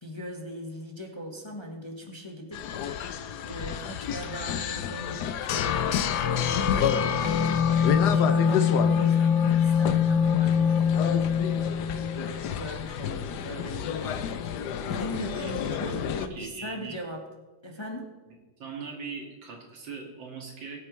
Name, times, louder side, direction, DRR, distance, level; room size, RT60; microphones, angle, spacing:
voice 1, 0.0-2.6 3.4-7.6 7.9-11.3 12.1-14.1 14.9-17.2 17.6-18.1, equal, 15° left, 1 dB, 1.1 m, -39 dB
sound 1, 2.5-16.3, left 8 dB, 70° left, 1.2 m, -31 dB
sound 2, 5.5-12.4, left 7 dB, 85° left, 1.4 m, -24 dB
voice 2, 15.1-17.0 18.6-20.8, right 5 dB, 80° right, 0 dB, 2.6 m, -40 dB
20.5 x 8.8 x 3.2 m, 1.2 s
omnidirectional pair, 2.0 m